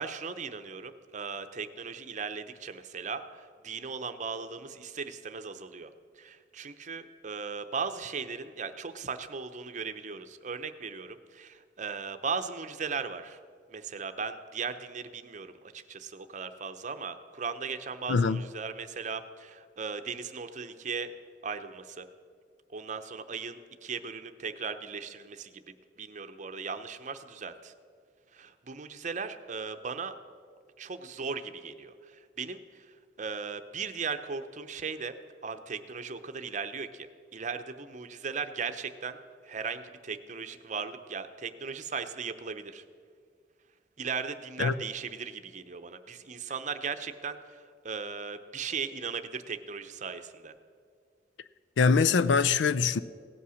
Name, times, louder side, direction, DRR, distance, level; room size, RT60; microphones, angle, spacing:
voice 1, 0.0-13.4 13.7-21.1 21.4-22.1 22.7-27.7 28.3-30.2 30.8-32.9 33.2-35.1 35.4-39.2 39.4-42.8 44.0-50.5, right 5 dB, 45° right, 0.7 m, -37 dB
voice 2, 18.1-18.4 44.6-44.7 51.8-53.0, left 5 dB, 90° left, 0.4 m, -23 dB
16.5 x 8.5 x 6.3 m
head